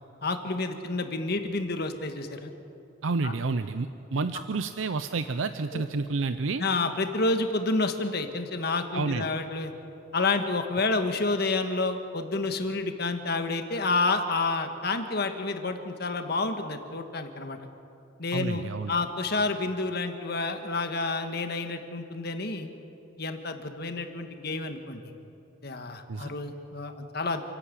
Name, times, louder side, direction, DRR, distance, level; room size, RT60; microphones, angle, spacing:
voice 1, 0.2-2.5 3.2-3.3 5.7-5.8 6.6-9.7 10.1-17.6 18.2-22.7 23.2-25.0 25.6-27.4, left 3 dB, 55° left, 6 dB, 1.6 m, -29 dB
voice 2, 3.0-6.6 8.9-9.3 18.3-18.9 26.1-26.3, right 4 dB, 90° right, 10 dB, 0.6 m, -30 dB
28.5 x 11.5 x 8.4 m, 2.9 s
head